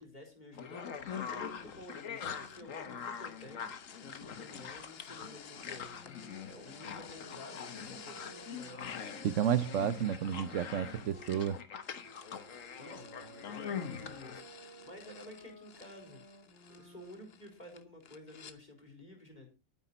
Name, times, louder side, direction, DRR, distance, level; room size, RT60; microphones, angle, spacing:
voice 1, 0.0-3.7 4.0-6.0 6.4-9.0 12.8-16.2 16.7-19.5, left 1 dB, 35° left, 4.0 m, -52 dB
sound 1, 0.5-14.4, left 7 dB, 90° left, 1.5 m, -43 dB
sound 2, 1.1-18.6, left 7 dB, 55° left, 1.1 m, -55 dB
sound 3, 5.6-11.3 12.0-17.4, right 1 dB, 20° right, 2.9 m, -55 dB
voice 2, 9.2-11.6, right 9 dB, 75° right, 1.1 m, -31 dB
12.0 x 9.8 x 4.2 m
omnidirectional pair, 1.3 m